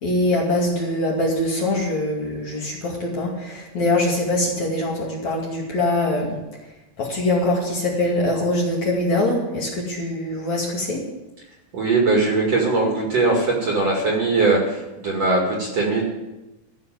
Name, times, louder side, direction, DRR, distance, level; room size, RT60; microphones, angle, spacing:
voice 1, 0.0-6.4 7.0-11.0, left 1 dB, 45° left, -3 dB, 3.1 m, -23 dB
voice 2, 11.7-16.0, right 3 dB, 45° right, -1 dB, 2.7 m, -20 dB
14.5 x 6.6 x 9.1 m, 1.0 s
omnidirectional pair, 5.1 m